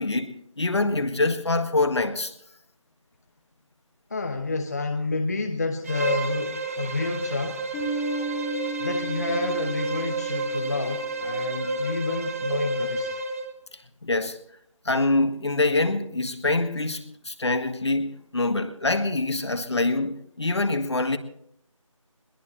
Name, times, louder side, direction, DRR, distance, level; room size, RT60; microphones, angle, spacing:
voice 1, 0.0-2.3 14.0-14.4 14.9-21.2, left 2 dB, 55° left, 1.7 m, -25 dB
voice 2, 4.1-7.6 8.8-13.1, left 3 dB, 30° left, 1.0 m, -29 dB
Bowed string instrument, 5.8-13.5, right 2 dB, 25° right, 1.6 m, -30 dB
Bass guitar, 7.7-11.2, right 3 dB, 5° left, 1.8 m, -34 dB
22.0 x 20.5 x 3.2 m
figure-of-eight pair, 165°, 17 cm